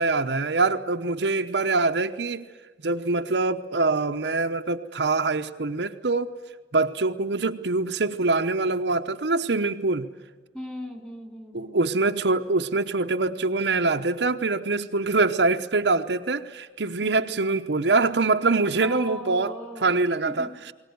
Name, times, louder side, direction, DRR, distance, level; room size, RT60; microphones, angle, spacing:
voice 1, 0.0-2.5 2.8-6.3 6.7-10.1 11.5-19.5 19.8-20.7, right 3 dB, 70° right, 0.9 m, -24 dB
voice 2, 10.5-11.8 17.0-17.3 18.8-19.9 20.2-20.5, left 1 dB, 10° left, 3.0 m, -38 dB
22.0 x 19.0 x 9.5 m
head